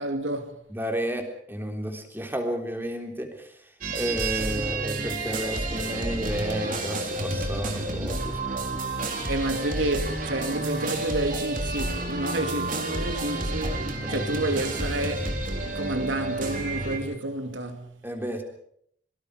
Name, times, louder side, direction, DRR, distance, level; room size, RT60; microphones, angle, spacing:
voice 1, 0.0-0.6 9.3-13.8 14.1-15.3 15.7-17.9, right 1 dB, 85° right, 2.4 m, -29 dB
voice 2, 0.7-3.5 4.0-8.8 14.0-14.3 18.0-18.4, equal, 10° right, 3.5 m, -32 dB
sound 1, 3.8-17.0, right 2 dB, 45° right, 4.0 m, -30 dB
25.5 x 23.5 x 4.9 m
head